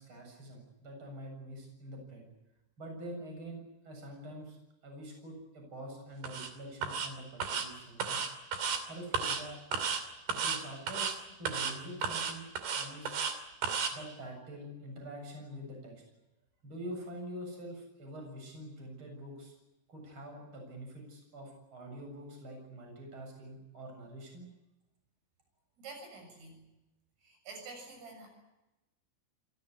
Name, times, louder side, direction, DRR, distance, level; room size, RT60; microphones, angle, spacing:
voice 1, 0.0-2.3 2.8-4.6 4.8-8.3 8.9-9.6 10.3-12.5 12.8-13.2 13.8-16.0 16.6-19.5 19.9-24.5, right 1 dB, 25° right, 2 dB, 8.0 m, -45 dB
sound 1, 6.2-6.5 6.8-7.1 7.4-7.7 8.0-8.8 9.1-9.4 9.7-10.0 10.3-10.6 10.9-11.1 11.5-11.7 12.0-13.3 13.6-13.9, right 6 dB, 55° right, 4.4 m, -33 dB
voice 2, 25.8-26.6 27.2-28.3, right 3 dB, 70° right, 3 dB, 9.7 m, -48 dB
28.0 x 17.5 x 9.8 m, 0.98 s
omnidirectional pair, 5.9 m